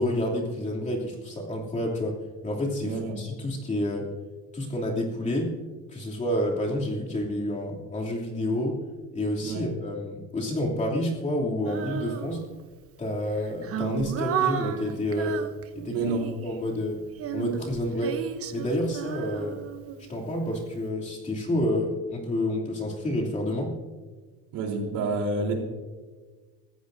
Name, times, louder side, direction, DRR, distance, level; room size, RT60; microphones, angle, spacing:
voice 1, 0.0-4.1 4.5-5.5 5.9-8.8 9.1-12.4 13.0-15.4 15.7-16.1 16.4-17.0 17.3-18.2 18.5-19.6 20.1-23.7, left 1 dB, 20° left, -2 dB, 2.9 m, -29 dB
voice 2, 2.8-3.2 9.4-9.6 15.9-16.3 24.5-25.5, right 3 dB, 70° right, 1 dB, 3.8 m, -29 dB
Female singing, 11.6-12.7 13.3-16.6 17.1-20.3, right 9 dB, 45° right, 1.1 m, -33 dB
24.0 x 15.5 x 2.7 m, 1.4 s
cardioid pair, 135°, 32 cm